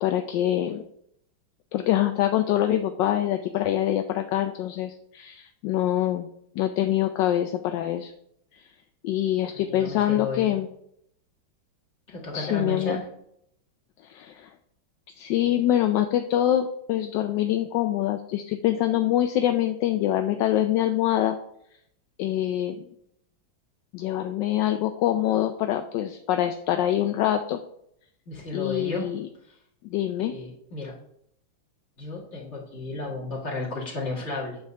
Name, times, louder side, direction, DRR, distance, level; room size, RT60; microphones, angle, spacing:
voice 1, 0.0-0.8 1.7-6.3 6.6-8.1 8.5-8.6 9.0-10.7 12.3-13.0 14.0-14.5 15.2-21.4 22.2-22.8 23.9-27.6 28.5-29.3 29.8-30.3, left 12 dB, 75° left, 7 dB, 1.1 m, -25 dB
voice 2, 9.5-10.6 12.1-13.0 28.3-29.1 30.2-30.9 32.0-34.6, left 3 dB, 35° left, -3 dB, 2.3 m, -33 dB
8.9 x 3.5 x 6.6 m, 0.72 s
omnidirectional pair, 2.3 m